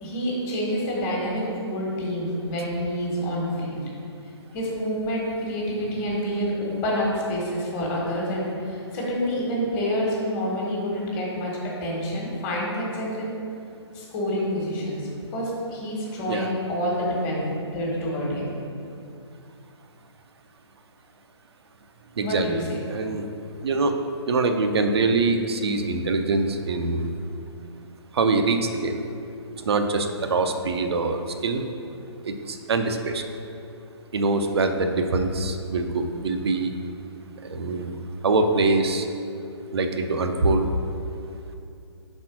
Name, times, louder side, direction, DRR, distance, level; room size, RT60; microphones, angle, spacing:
voice 1, 0.0-3.8 4.5-11.5 11.8-13.3 13.9-18.6 22.2-22.8, equal, 25° left, -4 dB, 1.4 m, -28 dB
voice 2, 22.2-23.3 23.6-23.9 24.3-27.1 28.1-29.0 29.7-31.6 32.2-33.2 34.1-36.7 37.5-37.9 38.2-39.0 39.7-40.7, right 3 dB, 60° right, 6 dB, 0.7 m, -24 dB
5.4 x 4.3 x 6.0 m, 2.6 s
hypercardioid pair, 150°, 15 cm